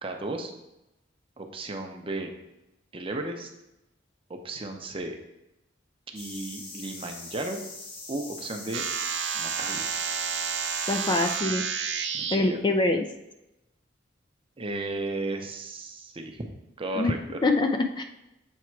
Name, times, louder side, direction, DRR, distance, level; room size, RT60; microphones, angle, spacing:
voice 1, 0.0-0.5 1.4-2.3 2.9-3.5 4.3-5.2 6.1-7.6 8.1-8.9 9.3-9.8 12.1-12.7 14.6-16.5 16.8-17.4, right 2 dB, 30° right, 4 dB, 0.7 m, -34 dB
sound 1, 6.2-11.4, left 3 dB, 55° left, 1.5 m, -42 dB
sound 2, 8.7-12.4, right 6 dB, 70° right, 0.6 m, -30 dB
voice 2, 10.9-11.6 12.3-13.0 17.0-17.1 17.4-17.7 18.0-18.1, left 2 dB, 25° left, 6 dB, 0.4 m, -24 dB
7.3 x 3.5 x 4.6 m, 0.90 s
head